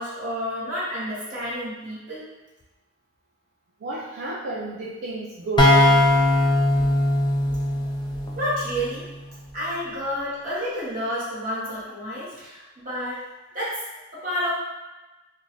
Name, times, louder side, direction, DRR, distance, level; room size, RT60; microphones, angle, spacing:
voice 1, 0.0-2.3 8.4-9.1 9.5-13.2 13.5-13.8 14.1-14.5, equal, 45° right, -9 dB, 1.3 m, -30 dB
voice 2, 3.8-6.1, right 3 dB, 65° right, -6 dB, 0.4 m, -31 dB
sound 1, 5.6-9.2, left 1 dB, 25° left, 0.3 m, -20 dB
2.5 x 2.3 x 3.2 m, 1.1 s
head